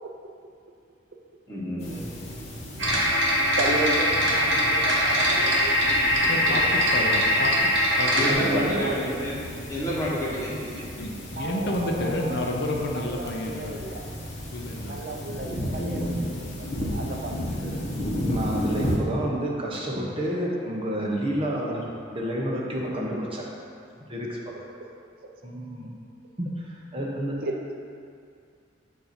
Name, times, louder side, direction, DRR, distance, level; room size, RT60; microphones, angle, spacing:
voice 1, 1.5-2.0 8.2-9.3 9.7-10.5 15.7-16.2 17.4-17.7, equal, 15° left, -7 dB, 1.2 m, -29 dB
sound 1, 1.8-19.0, equal, 35° left, 1.0 m, -34 dB
sound 2, 2.8-8.3, equal, 70° right, 1.3 m, -22 dB
voice 2, 3.6-5.7 6.5-6.6 8.0-8.9 11.3-12.5 12.9-14.0 14.9-16.2 16.6-17.4 25.2-25.3 27.4-27.7, right 2 dB, 50° right, 1 dB, 0.5 m, -33 dB
voice 3, 6.3-7.5 8.0-8.4 11.0-13.8 14.5-15.5, left 1 dB, 60° left, 0 dB, 0.6 m, -30 dB
voice 4, 8.3-9.1 10.6-10.9 18.2-21.8 22.1-23.4 24.1-24.5 25.4-25.9 26.4-27.4, right 1 dB, 25° right, -3 dB, 0.8 m, -29 dB
7.8 x 2.7 x 5.8 m, 2.3 s
head